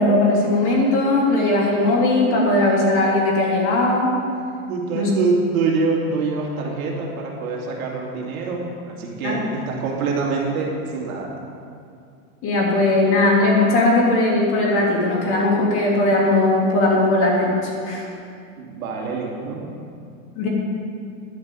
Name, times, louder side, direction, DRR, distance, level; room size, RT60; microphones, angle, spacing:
voice 1, 0.0-4.1 4.9-5.1 9.2-9.5 12.4-18.0 20.4-20.5, left 2 dB, 30° left, -4 dB, 2.6 m, -18 dB
voice 2, 4.7-11.3 18.6-19.7, right 4 dB, 85° right, -1 dB, 2.6 m, -25 dB
11.0 x 5.6 x 8.2 m, 2.4 s
supercardioid pair, 155°, 42 cm